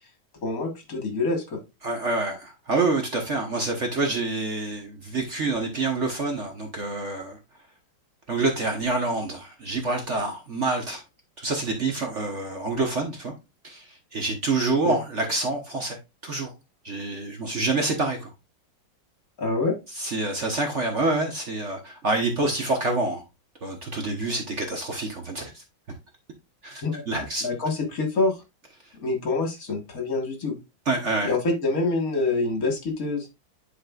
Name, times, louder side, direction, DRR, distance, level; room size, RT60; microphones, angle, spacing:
voice 1, 0.4-1.6 14.8-15.0 19.4-19.8 26.8-27.0 27.4-28.4 29.0-30.6 31.2-33.3, left 3 dB, 50° left, 1.8 m, -26 dB
voice 2, 1.8-7.4 8.3-11.0 11.4-13.3 13.6-16.0 16.2-16.5 16.8-18.3 20.0-23.2 23.6-25.6 26.6-27.5 30.9-31.3, right 3 dB, 45° right, 1.2 m, -27 dB
11.0 x 4.2 x 2.3 m
omnidirectional pair, 2.0 m